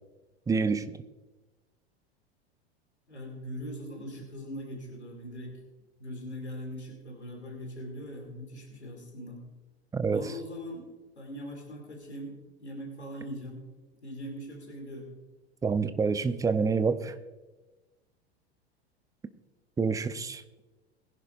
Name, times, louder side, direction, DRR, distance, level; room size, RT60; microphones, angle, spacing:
voice 1, 0.5-0.9 9.9-10.3 15.6-17.1 19.8-20.4, right 5 dB, 10° right, 0.6 m, -27 dB
voice 2, 3.1-5.5 6.0-9.4 10.1-10.9 11.2-13.6 14.0-15.1, equal, 90° left, 2.8 m, -41 dB
21.0 x 10.5 x 2.6 m
figure-of-eight pair, 85°, 33 cm